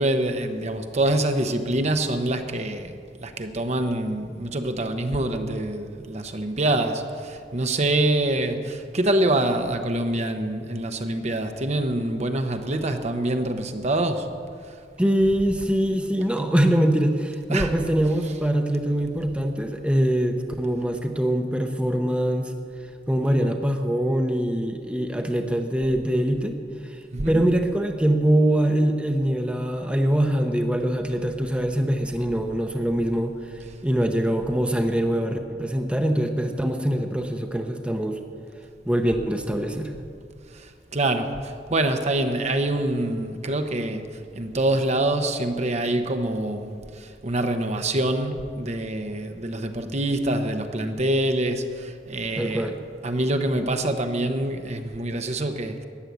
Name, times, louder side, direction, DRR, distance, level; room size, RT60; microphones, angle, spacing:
voice 1, 0.0-14.3 17.5-17.7 18.2-18.4 27.1-27.4 40.5-44.1 44.3-52.7 53.0-55.8, right 1 dB, 40° right, 1.0 m, -25 dB
voice 2, 15.0-22.5 23.1-26.6 26.8-27.0 27.3-38.2 38.9-40.0 52.3-52.8, right 1 dB, 5° right, 0.9 m, -23 dB
14.0 x 10.5 x 8.5 m
head